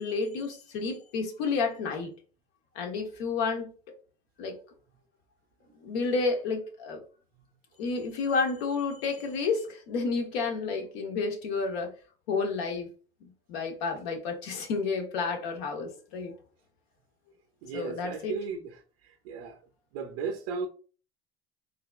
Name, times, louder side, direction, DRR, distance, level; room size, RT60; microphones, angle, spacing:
voice 1, 0.0-2.1 2.7-3.7 4.4-4.6 5.8-7.0 7.8-11.9 12.3-12.9 13.2-16.3 17.7-18.4, left 4 dB, 75° left, 1.1 m, -30 dB
voice 2, 17.6-19.6 19.9-20.7, right 5 dB, 70° right, 0.6 m, -36 dB
3.7 x 2.7 x 2.3 m
hypercardioid pair, 85°, 31 cm